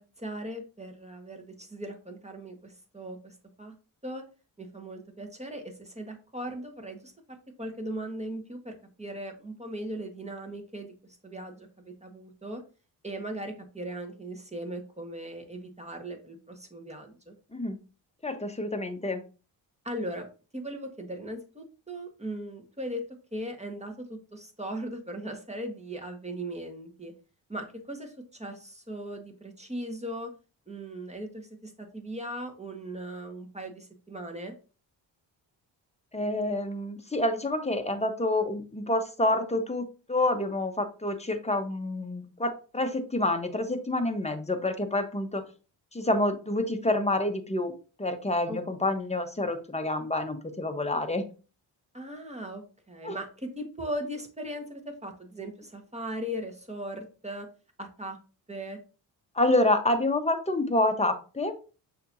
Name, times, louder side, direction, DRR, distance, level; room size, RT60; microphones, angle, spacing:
voice 1, 0.0-3.7 4.0-4.2 4.6-7.1 7.6-10.9 11.2-12.6 13.0-17.3 19.8-23.0 23.3-27.1 27.5-30.3 30.7-34.5 48.5-48.6 48.9-49.0 51.9-57.5 57.8-58.2 58.5-58.8, right 1 dB, 15° right, 4 dB, 1.4 m, -38 dB
voice 2, 18.2-19.2 36.1-39.8 40.1-45.4 45.9-47.7 48.0-51.3 53.0-53.2 59.4-61.6, left 1 dB, 15° left, 7 dB, 1.0 m, -28 dB
6.5 x 3.0 x 2.7 m, 0.34 s
supercardioid pair, 45°, 49 cm